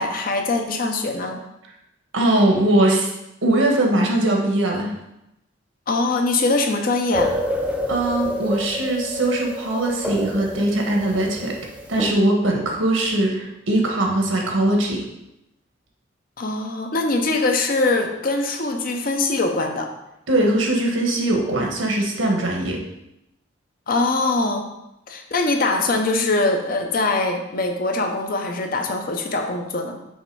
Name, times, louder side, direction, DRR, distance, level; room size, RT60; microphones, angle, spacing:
voice 1, 0.0-1.4 5.9-7.3 16.4-19.9 23.9-24.7 25.1-30.0, left 2 dB, 45° left, 4 dB, 0.7 m, -22 dB
voice 2, 2.1-3.1 3.4-4.9 7.9-11.5 11.9-15.0 20.3-22.8, right 1 dB, 80° right, 0 dB, 1.3 m, -20 dB
sound 1, 7.1-12.1, left 1 dB, 5° right, 0.5 m, -28 dB
6.4 x 3.3 x 4.6 m, 0.87 s
head